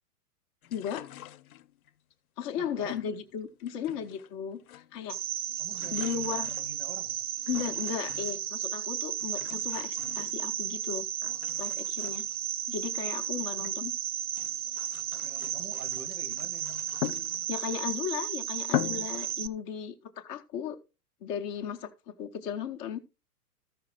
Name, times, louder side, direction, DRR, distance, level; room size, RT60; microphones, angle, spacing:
sound 1, 0.6-1.9 2.8-4.3 4.6-5.2 5.5-8.6 9.2-10.8 11.2-13.8 14.2-17.8 18.2-18.3 18.6-19.4, left 13 dB, 65° left, 0.6 m, -41 dB
voice 1, 0.7-1.1 2.4-5.2 5.9-6.5 7.5-11.0 11.6-12.3 12.7-13.9 17.5-20.8 21.2-21.9 22.2-23.0, left 8 dB, 15° left, 0.4 m, -35 dB
voice 2, 2.6-3.0 5.6-7.3 13.5-13.7 15.1-16.8, right 4 dB, 70° right, 1.9 m, -47 dB
Cricket, 5.1-19.5, right 10 dB, 40° right, 0.5 m, -34 dB
14.0 x 5.7 x 3.7 m
figure-of-eight pair, 105°, 47 cm